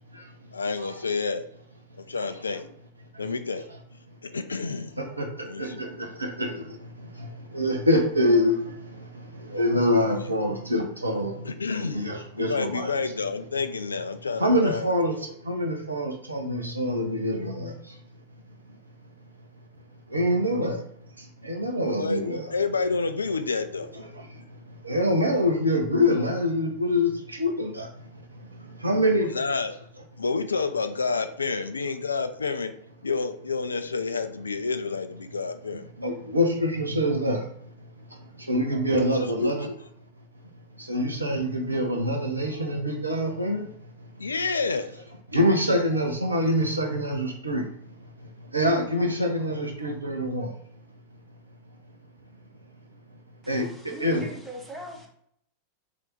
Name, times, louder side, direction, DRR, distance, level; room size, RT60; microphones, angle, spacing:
voice 1, 0.5-1.5 2.0-2.7 3.2-3.7 4.2-5.0 5.4-5.8 10.2-10.3 11.4-12.1 12.3-14.9 22.0-22.2 22.5-23.9 29.3-29.7 30.2-32.7 33.0-35.8 39.0-39.8 44.2-44.9, left 4 dB, 75° left, 0.3 m, -29 dB
voice 2, 5.0-5.3 5.6-6.6 7.5-8.5 9.5-11.3 11.7-12.9 14.4-15.1 15.5-17.7 20.1-20.8 21.4-22.4 23.9-24.0 24.8-27.1 27.4-27.9 28.8-29.3 36.0-37.4 38.5-39.7 40.9-43.7 45.3-47.6 48.5-50.5 53.5-53.7 54.0-54.3, left 1 dB, 80° right, 0.7 m, -25 dB
voice 3, 53.4-55.1, equal, ahead, 1.0 m, -41 dB
3.4 x 2.8 x 4.2 m
figure-of-eight pair, 90°, 0 cm